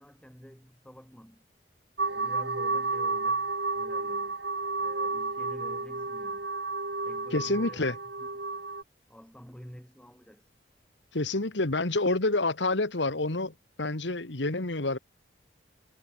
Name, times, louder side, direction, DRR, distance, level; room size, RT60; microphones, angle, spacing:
voice 1, 0.0-1.4 2.0-4.4 4.8-6.5 7.0-8.3 9.1-10.5, equal, 5° left, 7.5 m, -49 dB
sound 1, 2.0-8.8, right 3 dB, 70° right, 3.8 m, -31 dB
voice 2, 7.3-8.0 11.1-15.0, left 2 dB, 80° left, 2.0 m, -28 dB
head